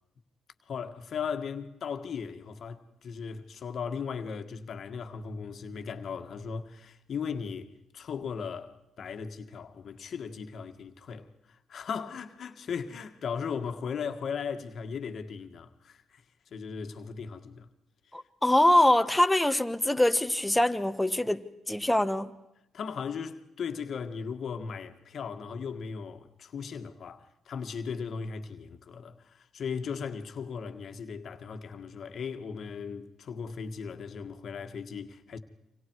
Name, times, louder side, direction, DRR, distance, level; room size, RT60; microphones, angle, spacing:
voice 1, 0.7-7.7 7.9-16.2 16.5-17.7 22.7-35.4, left 6 dB, 55° left, 1.7 m, -37 dB
voice 2, 18.1-22.3, left 1 dB, 5° left, 1.4 m, -24 dB
28.5 x 26.0 x 4.8 m
cardioid pair, 90°, 0 cm